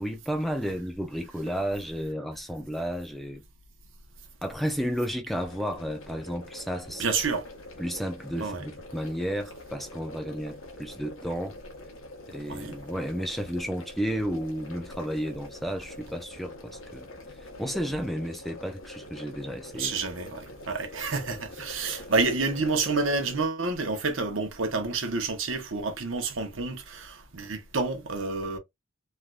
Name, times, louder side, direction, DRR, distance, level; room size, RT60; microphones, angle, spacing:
voice 1, 0.0-3.4 4.4-7.0 7.8-11.5 12.3-17.1 17.6-19.9, equal, ahead, 0.5 m, -32 dB
sound 1, 5.3-23.5, left 1 dB, 85° left, 0.9 m, -45 dB
voice 2, 7.0-7.5 8.4-8.6 12.5-12.8 19.7-28.6, right 3 dB, 75° right, 0.9 m, -29 dB
3.2 x 2.7 x 2.3 m
head